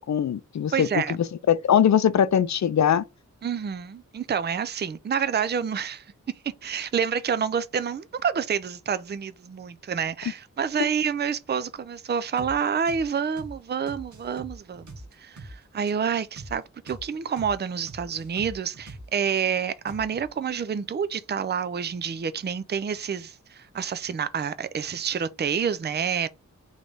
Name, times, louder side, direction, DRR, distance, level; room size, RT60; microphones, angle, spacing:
voice 1, 0.1-1.2 1.5-3.0, left 9 dB, 65° left, 0.5 m, -21 dB
voice 2, 0.7-1.2 3.4-6.1 6.6-26.3, right 7 dB, 35° right, 0.4 m, -28 dB
sound 1, 12.4-12.6 12.9-13.1 13.4-13.6 13.9-15.6 15.9-16.0 16.4-16.6 16.9-17.1 17.4-17.6 17.9-19.4 19.9-20.3, right 2 dB, 70° right, 1.0 m, -42 dB
3.3 x 3.2 x 3.9 m
wide cardioid pair, 75°, 31 cm